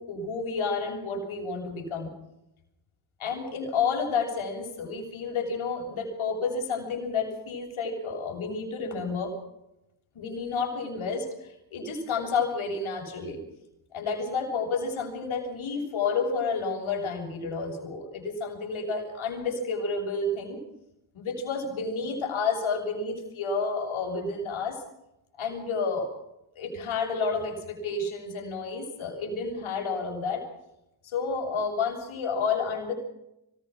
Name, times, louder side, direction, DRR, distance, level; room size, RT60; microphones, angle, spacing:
voice 1, 0.0-2.1 3.2-9.3 10.2-13.4 13.9-20.6 21.1-24.8 25.4-26.1 26.6-30.4 31.0-32.9, left 4 dB, 75° left, 2 dB, 7.2 m, -30 dB
25.5 x 20.5 x 6.2 m, 0.87 s
cardioid pair, 85°, 49 cm